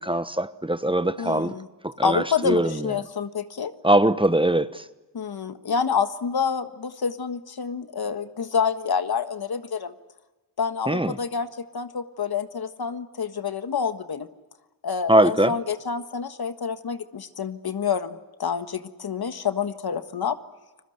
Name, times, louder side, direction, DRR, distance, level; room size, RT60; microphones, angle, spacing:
voice 1, 0.0-1.5 1.8-2.9 3.8-4.8 10.9-11.2 15.1-15.6, right 1 dB, 15° right, 13 dB, 1.0 m, -21 dB
voice 2, 1.2-1.7 2.0-3.7 5.1-9.9 10.6-14.3 14.8-20.4, left 6 dB, 65° left, 9 dB, 1.5 m, -28 dB
30.0 x 21.5 x 7.9 m, 1.1 s
cardioid pair, 55°, 40 cm